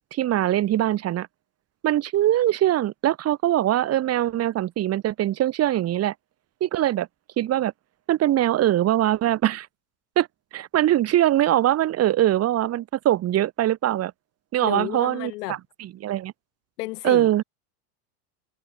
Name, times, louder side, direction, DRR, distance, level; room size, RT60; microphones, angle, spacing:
voice 1, 0.1-1.3 1.8-6.1 6.6-7.1 7.4-7.7 8.1-9.7 10.2-10.3 10.5-14.1 14.5-16.3 17.0-17.4, right 13 dB, 30° right, 2.0 m, -22 dB
voice 2, 14.6-15.6 16.8-17.4, left 20 dB, 80° left, 5.1 m, -32 dB
supercardioid pair, 145°, 47 cm